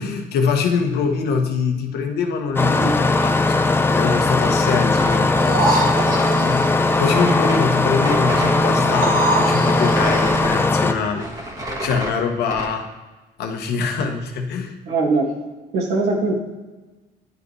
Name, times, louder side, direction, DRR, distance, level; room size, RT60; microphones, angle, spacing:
voice 1, 0.0-11.5 11.8-12.9 13.4-14.8, left 5 dB, 75° left, 4 dB, 1.1 m, -24 dB
Engine starting, 2.6-10.9, left 2 dB, 15° left, 0.5 m, -19 dB
sound 1, 5.0-8.7 9.2-12.7, equal, 20° right, 1.6 m, -31 dB
sound 2, 5.4-6.7 8.8-10.4 11.0-11.1, right 2 dB, 55° right, 1.5 m, -24 dB
voice 2, 14.9-15.3 15.7-16.3, right 3 dB, 75° right, -2 dB, 2.1 m, -20 dB
10.5 x 5.1 x 3.2 m, 1.2 s
cardioid pair, 110°, 17 cm